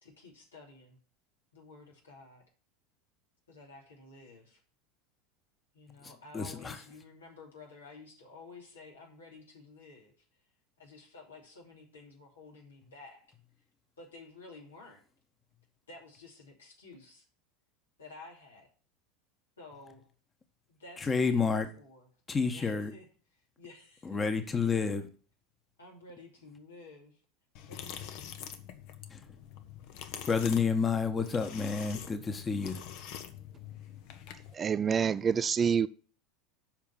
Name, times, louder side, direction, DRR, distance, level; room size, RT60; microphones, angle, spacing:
voice 1, 0.0-1.0 1.5-2.4 3.5-4.6 5.7-10.1 10.8-13.3 14.0-15.0 15.9-17.2 18.0-18.7 19.6-20.1 20.7-22.1 22.5-23.1 23.6-24.5 25.8-27.2 27.7-28.3, left 3 dB, 85° left, 2.8 m, -52 dB
voice 2, 6.0-6.8 21.0-21.7 22.3-22.9 24.0-25.1 29.1-29.2 30.3-32.8, left 5 dB, 25° left, 1.2 m, -30 dB
sound 1, 27.5-34.5, left 9 dB, 60° left, 1.0 m, -45 dB
voice 3, 34.5-35.9, right 7 dB, 30° right, 0.4 m, -27 dB
7.4 x 5.2 x 7.1 m
hypercardioid pair, 80°, 0 cm